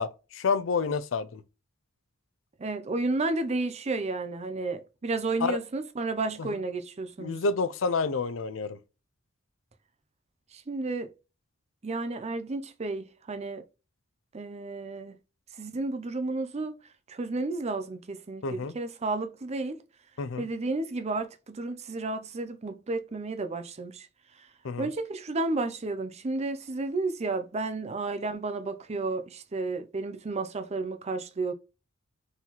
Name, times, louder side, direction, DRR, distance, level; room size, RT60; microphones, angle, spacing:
voice 1, 0.0-1.4 5.4-5.6 6.4-6.6 7.2-8.8 18.4-18.7 20.2-20.5 24.6-24.9, left 4 dB, 75° left, 0.5 m, -29 dB
voice 2, 2.6-7.4 10.5-11.1 11.8-13.6 14.3-15.2 15.6-16.8 17.1-19.8 20.4-24.1 24.8-31.5, right 3 dB, 35° right, 0.5 m, -32 dB
4.0 x 3.0 x 4.1 m
head